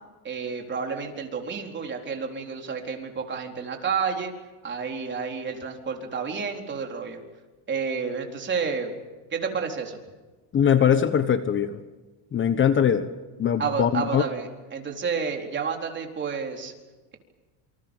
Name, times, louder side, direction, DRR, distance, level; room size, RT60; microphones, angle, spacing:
voice 1, 0.2-4.3 4.6-7.2 7.7-8.9 9.3-10.0 13.6-16.7, right 5 dB, 30° right, 2 dB, 4.2 m, -30 dB
voice 2, 10.5-11.8 12.3-13.1 13.4-14.2, left 8 dB, 30° left, 10 dB, 1.2 m, -21 dB
28.0 x 26.0 x 5.5 m, 1.2 s
cardioid pair, 135°, 40 cm